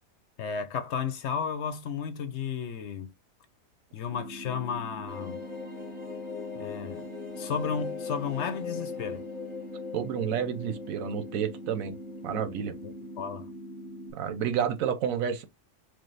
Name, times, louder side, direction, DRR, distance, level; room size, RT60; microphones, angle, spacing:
voice 1, 0.4-3.1 3.9-5.5 6.5-7.1 7.4-9.3 12.8-13.5, left 6 dB, 65° left, 0.9 m, -33 dB
sound 1, 4.1-14.1, equal, 5° right, 0.8 m, -43 dB
sound 2, 5.1-12.5 12.8-12.9 13.2-13.3, left 6 dB, 35° right, 2.0 m, -40 dB
voice 2, 9.9-12.0 12.2-12.7 14.1-15.4, right 8 dB, 85° right, 1.1 m, -30 dB
4.9 x 2.1 x 3.9 m
omnidirectional pair, 1.4 m